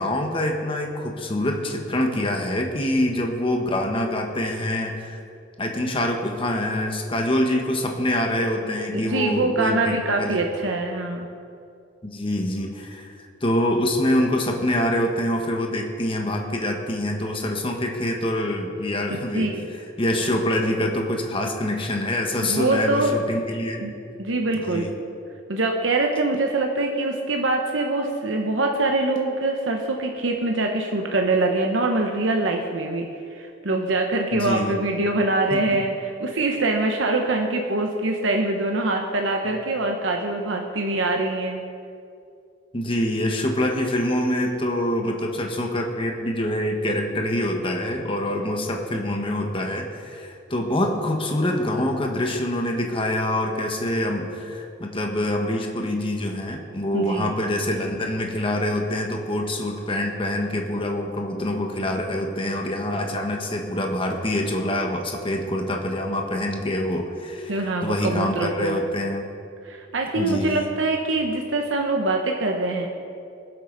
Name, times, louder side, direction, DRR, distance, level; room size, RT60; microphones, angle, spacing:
voice 1, 0.0-5.2 5.6-10.4 12.0-13.1 13.4-19.5 20.0-23.9 24.5-24.9 34.3-34.7 35.5-35.8 42.7-69.3 70.1-70.7, left 1 dB, 30° left, 2 dB, 1.3 m, -25 dB
voice 2, 8.9-11.3 19.3-19.7 22.4-23.1 23.8-23.9 24.2-24.9 25.5-41.6 56.9-57.3 66.3-66.4 67.5-68.8 69.6-72.9, right 2 dB, 80° right, 2 dB, 1.0 m, -24 dB
22.0 x 7.9 x 4.0 m, 2.5 s
head